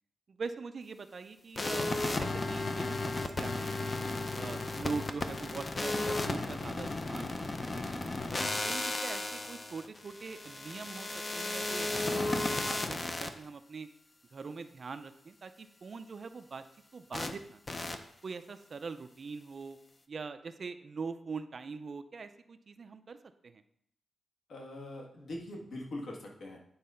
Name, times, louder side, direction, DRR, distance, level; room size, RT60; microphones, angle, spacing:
voice 1, 0.3-1.9 2.2-4.0 4.4-8.0 8.3-13.9 14.3-16.6 16.9-17.6 18.2-19.8 20.1-23.2 23.4-23.6, right 4 dB, 40° right, 10 dB, 0.4 m, -43 dB
sound 1, 1.6-13.3 17.1-17.3 17.7-18.0, left 2 dB, 25° left, 0.6 m, -34 dB
voice 2, 24.5-26.6, left 1 dB, 65° left, 0 dB, 1.7 m, -43 dB
9.4 x 4.0 x 5.5 m, 0.72 s
wide cardioid pair, 155°, 0 cm